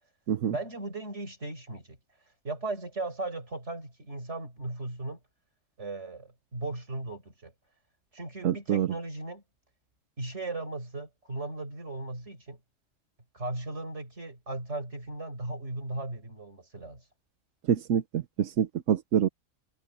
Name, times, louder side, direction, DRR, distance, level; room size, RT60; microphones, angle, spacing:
voice 1, 0.5-2.0 2.4-5.2 5.8-7.5 8.1-9.4 10.2-12.6 13.3-17.0, right 2 dB, 55° right, 5.4 m, -37 dB
voice 2, 8.4-8.9 17.7-19.3, right 9 dB, 70° right, 1.1 m, -26 dB
omnidirectional pair, 1.4 m